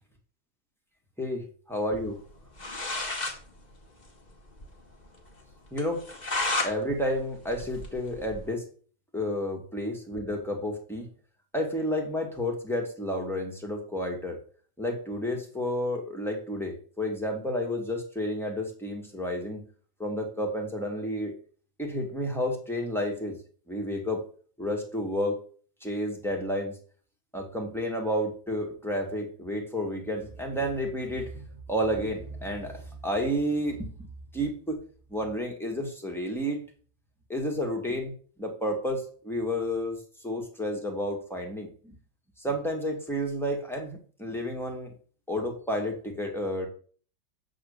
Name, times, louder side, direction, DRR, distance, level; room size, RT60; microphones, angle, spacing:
voice 1, 1.2-2.2 5.7-6.0 6.6-8.7 9.1-11.1 11.5-14.4 14.8-19.7 20.0-21.3 21.8-23.4 23.7-24.2 24.6-25.4 25.8-26.8 27.3-34.8 35.1-36.6 37.3-38.1 38.4-40.0 40.2-41.9 42.4-44.9 45.3-46.7, equal, ahead, 0 dB, 1.6 m, -31 dB
sound 1, 2.3-2.4 2.6-3.4 3.7-3.8 4.1-4.2 4.6-4.7 5.1-5.2 5.8-6.7 7.1-8.5, left 2 dB, 25° left, 1.6 m, -31 dB
7.9 x 3.9 x 6.6 m, 0.43 s
omnidirectional pair, 2.0 m